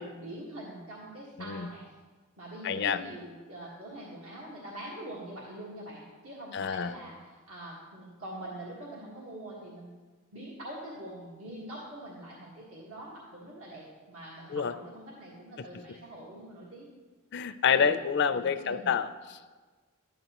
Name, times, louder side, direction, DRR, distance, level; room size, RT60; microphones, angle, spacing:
voice 1, 0.0-1.9 2.4-7.1 7.5-9.9 10.3-16.9 17.7-18.0 18.3-18.9, right 1 dB, 75° right, -6 dB, 1.6 m, -44 dB
voice 2, 2.6-3.0 6.5-6.9 14.5-14.7 17.3-19.4, left 6 dB, 50° left, 11 dB, 0.4 m, -28 dB
12.5 x 9.2 x 2.9 m, 1.3 s
head